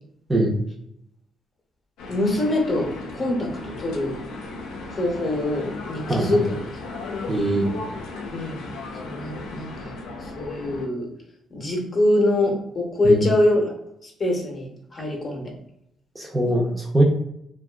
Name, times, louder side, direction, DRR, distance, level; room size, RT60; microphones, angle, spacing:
sound 1, 2.0-10.9, left 3 dB, 85° left, 0.4 m, -36 dB
voice 1, 2.1-4.2 4.9-6.7 8.3-8.6 9.0-9.9 10.2-11.1 11.5-13.7 14.0-15.5, left 1 dB, 35° left, 1 dB, 0.7 m, -24 dB
voice 2, 6.1-6.4 7.3-7.7 13.0-13.2 16.2-17.0, right 1 dB, 15° right, -1 dB, 0.6 m, -21 dB
2.5 x 2.3 x 2.3 m, 0.76 s
cardioid pair, 90°, 0 cm